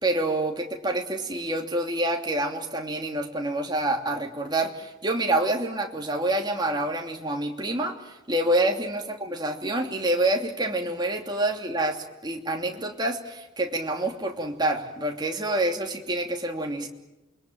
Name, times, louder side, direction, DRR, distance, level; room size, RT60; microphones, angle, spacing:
voice 1, 0.0-16.9, right 1 dB, 20° right, 2 dB, 3.0 m, -27 dB
28.5 x 22.5 x 9.2 m, 0.98 s
head